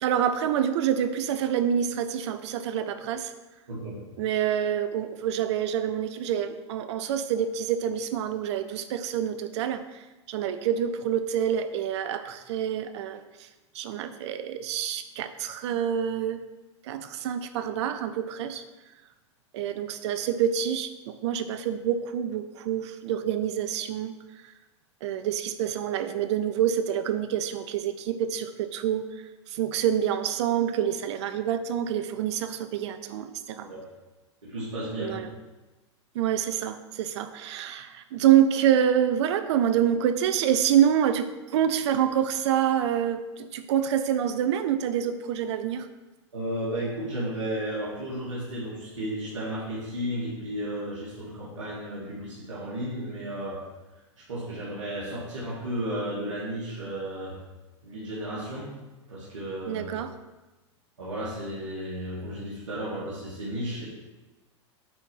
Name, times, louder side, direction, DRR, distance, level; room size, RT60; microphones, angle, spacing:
voice 1, 0.0-3.3 4.2-13.5 13.7-16.4 16.8-18.6 19.5-24.1 25.0-29.0 29.5-33.7 35.0-35.3 36.1-45.9 59.7-60.1, right 9 dB, 65° right, 11 dB, 0.7 m, -27 dB
voice 2, 34.4-35.3 46.3-53.6 54.3-57.4 57.8-58.7 59.1-59.8 61.0-63.8, right 1 dB, 85° right, -8 dB, 2.5 m, -33 dB
8.8 x 4.5 x 5.5 m, 1.1 s
hypercardioid pair, 100°, 15 cm